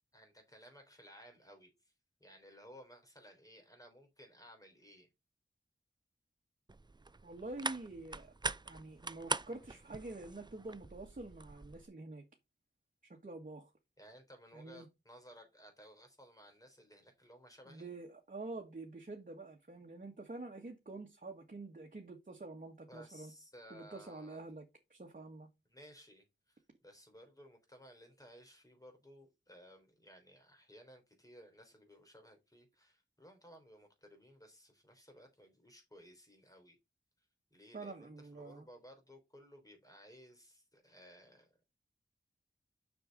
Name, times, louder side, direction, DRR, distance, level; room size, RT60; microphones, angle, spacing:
voice 1, 0.1-1.9 2.2-5.1 14.0-17.9 22.9-24.4 25.7-36.8 37.5-41.5, equal, 20° left, 3.5 m, -58 dB
sound 1, 6.7-11.9, right 3 dB, 25° right, 0.5 m, -43 dB
voice 2, 7.2-8.3 8.6-12.2 13.0-13.7 14.5-14.9 17.7-23.3 23.7-25.5 37.7-38.7, right 2 dB, 45° right, 1.6 m, -47 dB
6.7 x 6.4 x 4.0 m
wide cardioid pair, 70°, 19 cm